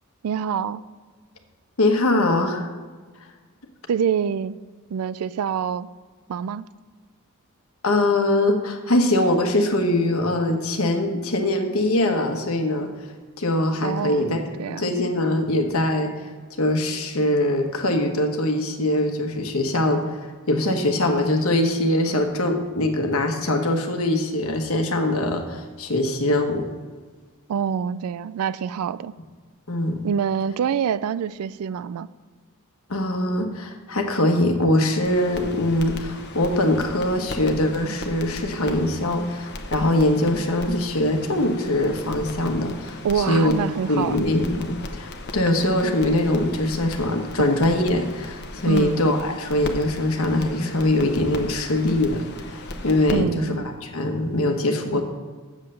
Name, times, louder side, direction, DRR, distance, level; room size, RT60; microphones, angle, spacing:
voice 1, 0.2-0.8 3.9-4.6 4.9-5.9 6.3-6.6 13.8-14.9 27.5-29.2 30.0-32.1 43.0-44.2 48.7-49.0 53.1-53.6, right 7 dB, 85° right, 17 dB, 0.3 m, -26 dB
voice 2, 1.8-2.7 7.8-12.9 13.4-14.4 14.7-16.1 16.6-26.7 29.7-30.0 32.9-43.5 43.9-55.0, left 1 dB, 75° left, 4 dB, 1.2 m, -22 dB
sound 1, 35.0-53.1, left 2 dB, 50° left, 0.9 m, -37 dB
7.7 x 7.3 x 6.8 m, 1.4 s
head